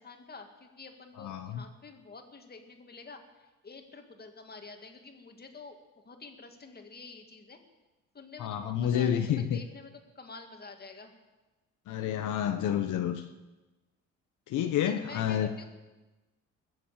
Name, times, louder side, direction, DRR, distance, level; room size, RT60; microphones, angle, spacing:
voice 1, 0.0-3.2 3.6-7.6 8.1-11.1 14.9-15.6, left 4 dB, 30° left, 4 dB, 2.2 m, -48 dB
voice 2, 1.2-1.6 8.4-9.6 11.9-13.2 14.5-15.5, left 9 dB, 80° left, 6 dB, 1.0 m, -29 dB
21.0 x 7.7 x 7.4 m, 1.2 s
cardioid pair, 90°, 30 cm